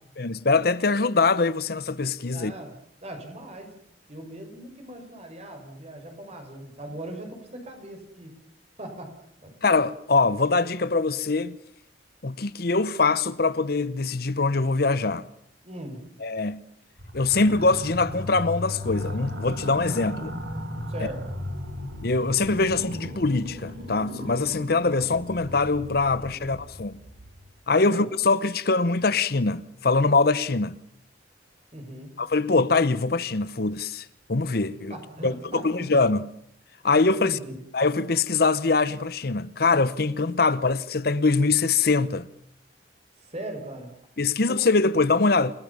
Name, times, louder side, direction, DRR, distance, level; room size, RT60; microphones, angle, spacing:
voice 1, 0.2-2.5 9.6-11.6 12.2-15.3 16.2-16.6 17.1-20.3 22.0-26.9 27.7-30.7 32.2-35.0 35.2-36.3 36.8-37.4 37.7-42.3 44.2-45.5, left 3 dB, 55° left, 0.9 m, -23 dB
voice 2, 2.3-2.7 3.0-3.7 4.1-8.3 8.8-9.5 15.6-16.0 20.9-21.3 26.2-26.6 27.8-28.1 31.7-32.2 34.9-36.0 37.2-37.6 43.2-43.9, right 1 dB, 35° right, 6.3 m, -39 dB
sound 1, 17.0-27.5, left 1 dB, 70° right, 4.4 m, -36 dB
28.5 x 19.0 x 7.2 m
head